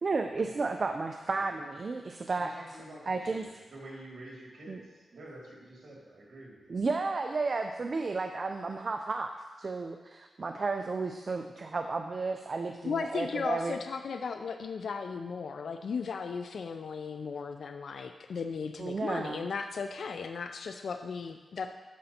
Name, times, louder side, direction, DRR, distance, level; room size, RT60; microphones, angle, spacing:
voice 1, 0.0-2.5 3.1-3.5 4.7-4.8 6.7-9.3 9.6-13.8 18.8-19.5, right 3 dB, 50° right, 5 dB, 0.4 m, -32 dB
voice 2, 2.4-6.8, right 1 dB, 70° right, -4 dB, 2.3 m, -49 dB
voice 3, 12.8-21.7, left 5 dB, 75° left, 7 dB, 0.3 m, -36 dB
12.5 x 5.2 x 2.8 m, 1.3 s
cardioid pair, 75°, 0 cm